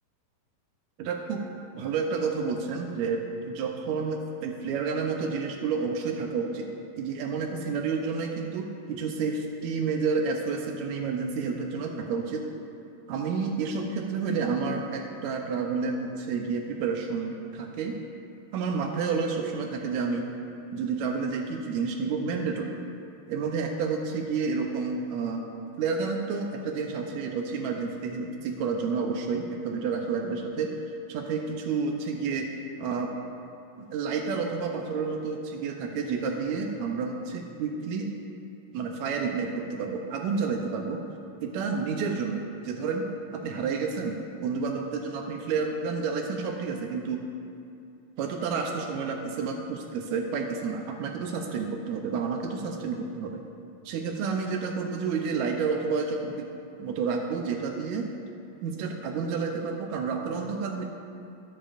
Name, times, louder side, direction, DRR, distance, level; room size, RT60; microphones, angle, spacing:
voice 1, 1.0-1.4 1.7-6.7 7.0-12.5 13.1-18.0 18.5-20.3 20.7-22.8 23.3-25.4 25.8-30.7 31.1-32.5 32.8-33.1 33.9-38.1 38.7-41.0 41.4-43.0 43.3-47.2 48.2-53.4 53.8-56.5 56.8-58.1 58.6-60.9, right 5 dB, 90° right, 2 dB, 1.6 m, -30 dB
18.0 x 7.1 x 2.5 m, 2.6 s
omnidirectional pair, 4.0 m